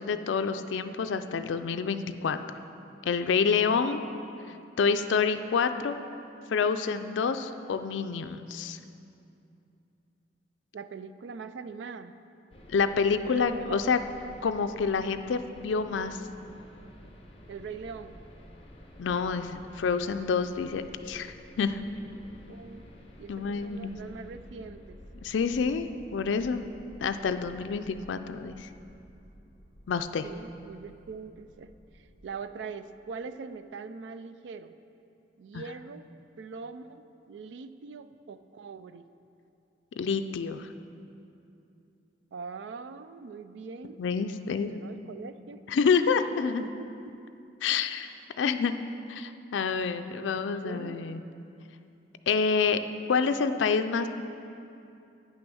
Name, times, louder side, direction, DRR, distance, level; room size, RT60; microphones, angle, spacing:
voice 1, 0.0-2.4 3.1-4.0 4.8-6.0 6.5-8.8 12.7-14.0 14.4-16.2 19.0-21.8 23.3-23.9 25.2-25.9 26.1-26.6 27.0-28.7 29.9-30.3 35.5-35.6 40.0-40.7 44.0-44.7 45.7-46.6 47.6-48.1 48.4-48.7 49.1-51.2 52.3-52.8 53.1-54.1, left 5 dB, 90° left, 9 dB, 0.4 m, -28 dB
voice 2, 10.7-12.1 13.2-13.8 17.5-18.2 22.5-22.9 23.2-25.0 30.2-34.7 35.4-36.1 36.4-39.1 42.3-44.0 44.3-45.6 46.6-46.8 47.0-47.2 50.1-51.0, right 5 dB, 80° right, 12 dB, 0.4 m, -42 dB
sound 1, 12.5-32.4, equal, 30° left, 0.9 m, -51 dB
8.8 x 6.2 x 6.2 m, 2.7 s
head